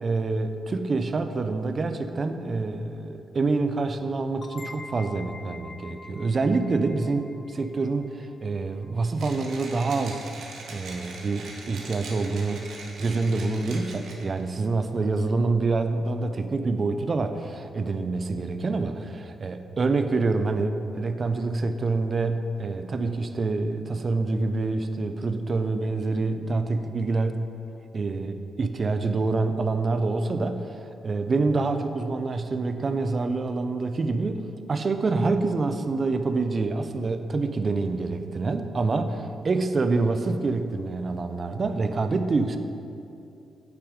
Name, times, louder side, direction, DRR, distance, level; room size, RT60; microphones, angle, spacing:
voice 1, 0.0-10.3 10.7-12.6 13.0-27.4 27.9-30.8 31.0-34.4 34.7-42.6, right 3 dB, 30° right, 8 dB, 0.5 m, -26 dB
sound 1, 4.4-9.8, left 3 dB, 40° left, 0.5 m, -46 dB
Mechanisms, 9.1-14.4, right 3 dB, 75° right, 1.2 m, -42 dB
8.3 x 6.1 x 5.1 m, 2.7 s
wide cardioid pair, 150°, 0 cm